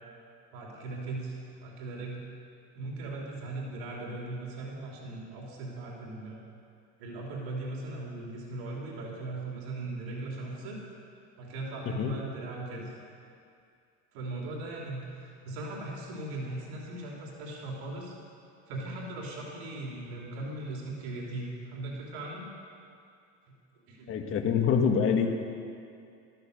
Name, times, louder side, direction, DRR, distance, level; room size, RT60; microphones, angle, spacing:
voice 1, 0.5-2.2 2.7-6.4 7.0-10.8 11.4-12.9 14.1-18.1 18.7-22.4 23.9-24.1, right 2 dB, 90° right, -2 dB, 3.3 m, -38 dB
voice 2, 24.1-25.3, left 7 dB, 45° left, 3 dB, 1.7 m, -25 dB
13.5 x 13.5 x 6.7 m, 2.4 s
cardioid pair, 120°, 30 cm